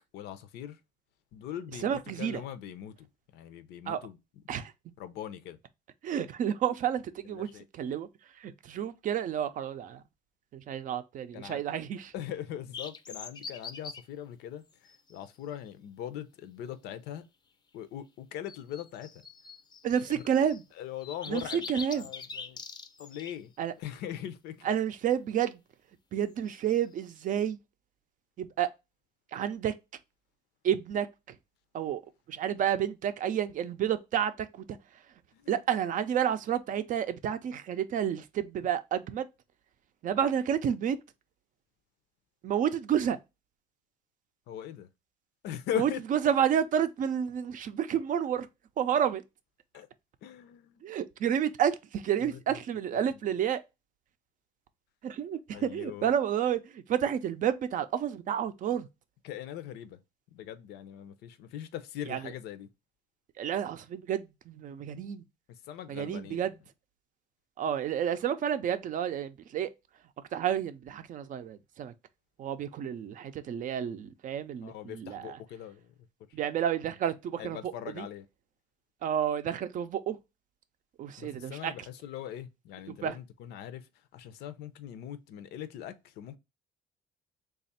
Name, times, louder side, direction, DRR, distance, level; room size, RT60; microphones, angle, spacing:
voice 1, 0.1-0.8 1.3-4.2 5.0-5.6 7.2-7.7 11.3-11.6 12.1-17.3 17.7-19.2 20.1-20.2 20.7-21.7 21.9-22.6 23.0-23.5 23.8-24.7 35.3-35.6 44.5-44.9 45.4-46.0 49.7-49.9 50.2-50.9 52.2-52.6 53.1-53.2 55.5-56.1 59.2-60.0 60.3-62.7 65.5-66.6 74.6-76.4 77.4-78.3 81.2-86.4, left 10 dB, 80° left, 0.5 m, -41 dB
voice 2, 1.8-2.4 3.9-4.0 4.5-4.7 6.0-7.5 7.7-8.1 8.4-10.0 10.5-12.1 19.8-20.6 21.3-22.1 23.6-23.7 24.6-25.6 26.1-27.6 28.4-28.7 29.3-29.7 30.6-31.1 31.7-32.0 32.3-34.6 35.5-39.3 40.0-41.0 42.4-43.2 45.8-48.5 48.8-49.2 50.8-53.6 55.0-58.9 62.1-62.3 63.4-65.2 65.9-66.5 67.6-69.7 70.3-71.9 72.4-75.4 76.3-78.1 79.0-80.2 81.0-81.7 83.0-83.2, right 9 dB, 50° right, 0.4 m, -30 dB
sound 1, 12.7-14.0 14.9-15.2 18.5-20.6 21.0-23.3 26.5-26.8, left 5 dB, 25° left, 0.5 m, -43 dB
3.3 x 2.4 x 4.1 m
cardioid pair, 110°, 17 cm